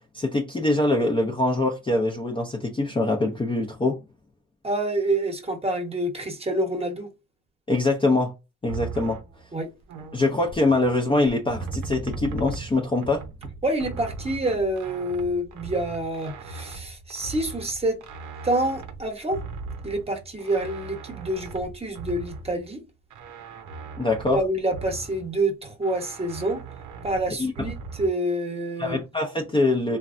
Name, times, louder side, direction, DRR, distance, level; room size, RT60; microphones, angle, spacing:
voice 1, 0.1-4.0 7.7-8.3 8.6-9.2 10.1-13.2 24.0-24.4 27.4-27.5 28.8-30.0, left 2 dB, 15° left, 0.5 m, -23 dB
voice 2, 4.6-7.1 9.5-9.7 13.6-18.0 18.4-19.4 19.8-22.8 24.3-26.6 27.0-29.0, right 1 dB, 20° right, 0.9 m, -27 dB
sound 1, 8.7-10.9 11.2-22.7 23.1-25.4 25.8-28.1, right 4 dB, 90° right, 0.6 m, -38 dB
3.2 x 2.2 x 2.5 m
cardioid pair, 90°, 30 cm